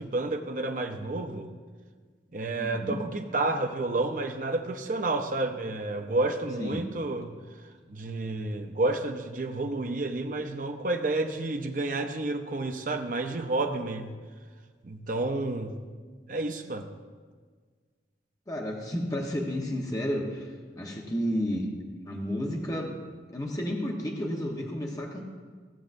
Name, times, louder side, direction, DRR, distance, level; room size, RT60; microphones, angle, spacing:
voice 1, 0.0-1.5 2.3-7.3 7.9-14.1 14.8-15.8 16.3-16.9, right 2 dB, 45° right, 5 dB, 0.6 m, -30 dB
voice 2, 2.6-3.0 6.6-6.9 18.5-21.7 22.0-23.0 23.3-25.2, equal, 20° left, -1 dB, 1.0 m, -32 dB
15.5 x 7.0 x 2.6 m, 1.5 s
head